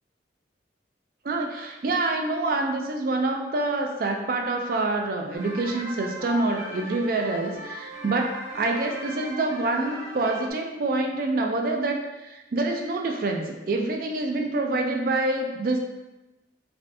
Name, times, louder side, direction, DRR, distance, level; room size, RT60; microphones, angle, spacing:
voice 1, 1.2-15.8, right 2 dB, 50° right, 2 dB, 0.4 m, -26 dB
sound 1, 5.3-10.5, equal, 85° right, 1.1 m, -38 dB
3.2 x 2.5 x 2.6 m, 1.0 s
head